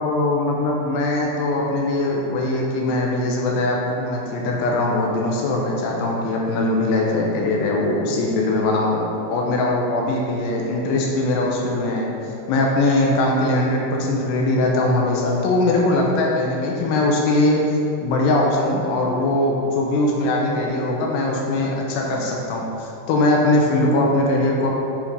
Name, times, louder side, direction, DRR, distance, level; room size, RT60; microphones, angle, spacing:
voice 1, 0.0-12.1 12.5-24.7, left 2 dB, 85° left, -1 dB, 2.9 m, -21 dB
6.8 x 5.0 x 5.1 m, 2.8 s
omnidirectional pair, 4.8 m